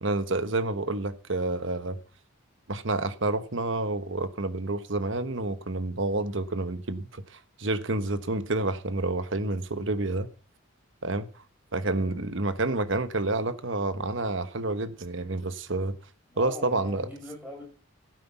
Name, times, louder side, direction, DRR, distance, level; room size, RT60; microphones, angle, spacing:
voice 1, 0.0-2.0 2.7-7.2 7.6-10.3 11.0-11.3 11.7-16.0 16.4-17.1, right 2 dB, 60° right, 1.2 m, -29 dB
voice 2, 11.8-12.2 16.3-17.6, equal, 5° right, 7.1 m, -42 dB
12.5 x 9.4 x 5.8 m
head